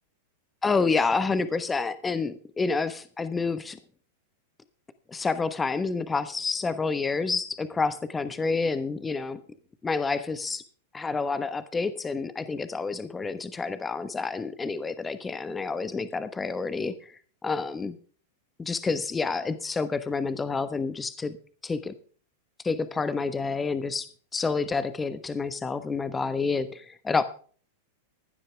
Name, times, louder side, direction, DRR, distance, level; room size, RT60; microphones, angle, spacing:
voice 1, 0.6-3.8 5.1-9.4 9.8-10.6 10.9-17.1 17.4-18.0 18.6-21.4 21.6-21.9 22.6-27.2, left 4 dB, 15° left, 13 dB, 1.2 m, -28 dB
16.5 x 11.5 x 3.5 m, 0.43 s
hypercardioid pair, 110°, 0 cm